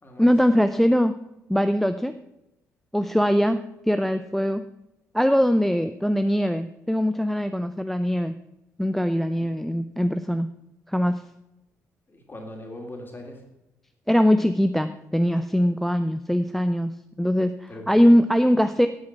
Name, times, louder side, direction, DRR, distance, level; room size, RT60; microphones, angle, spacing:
voice 1, 0.2-1.1 1.5-2.1 2.9-3.6 3.9-4.6 5.1-8.3 8.8-10.5 10.9-11.2 14.1-16.9 17.2-18.9, equal, 5° left, 10 dB, 0.5 m, -21 dB
voice 2, 12.1-13.4 17.7-18.2, left 1 dB, 25° left, 2 dB, 2.9 m, -41 dB
10.0 x 8.6 x 5.8 m, 0.91 s
figure-of-eight pair, 45°, 8 cm